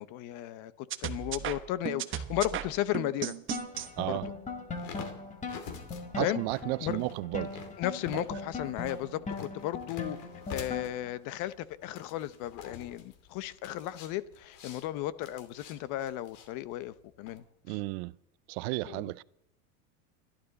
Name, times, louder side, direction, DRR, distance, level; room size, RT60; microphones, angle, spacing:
voice 1, 0.0-3.4 4.0-4.3 6.2-6.4 6.8-7.0 7.8-10.2 10.5-17.8 18.8-19.2, left 13 dB, 50° left, 0.9 m, -35 dB
sound 1, 0.9-3.9, right 10 dB, 30° right, 1.0 m, -35 dB
sound 2, 3.5-11.2, left 3 dB, 20° left, 2.0 m, -40 dB
sound 3, 3.7-17.4, left 6 dB, 70° left, 2.8 m, -49 dB
voice 2, 4.0-4.3 6.2-7.6 8.1-8.2 17.7-18.1 18.5-19.2, right 23 dB, 55° right, 0.5 m, -33 dB
29.5 x 12.0 x 4.1 m
supercardioid pair, 125°, 39 cm